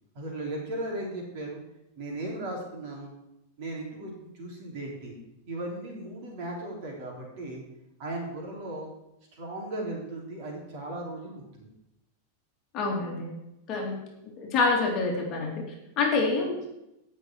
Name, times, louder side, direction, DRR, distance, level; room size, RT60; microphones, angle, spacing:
voice 1, 0.1-1.6 2.0-3.1 3.6-5.1 5.5-7.6 8.0-8.9 9.3-11.7, right 1 dB, 45° right, -2 dB, 4.0 m, -36 dB
voice 2, 12.7-13.3 13.7-14.0 14.4-15.6 16.0-16.6, left 3 dB, 30° left, -1 dB, 2.6 m, -26 dB
17.5 x 6.3 x 4.8 m, 0.87 s
supercardioid pair, 165°, 0 cm